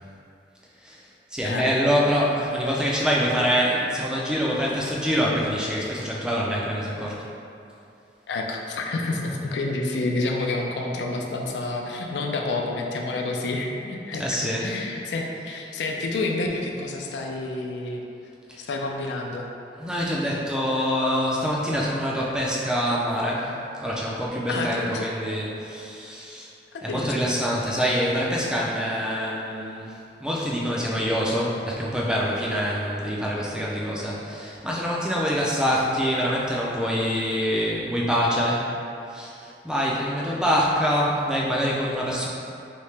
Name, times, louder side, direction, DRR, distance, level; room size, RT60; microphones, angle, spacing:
voice 1, 0.8-7.2 14.2-14.7 15.7-15.8 18.5-18.7 19.8-26.5 26.8-38.7 39.1-42.3, equal, 5° right, -5 dB, 0.3 m, -25 dB
voice 2, 8.3-18.0 18.6-19.5 24.5-25.1 26.7-27.4, left 2 dB, 80° left, 1 dB, 0.4 m, -29 dB
3.2 x 2.7 x 3.2 m, 2.7 s
head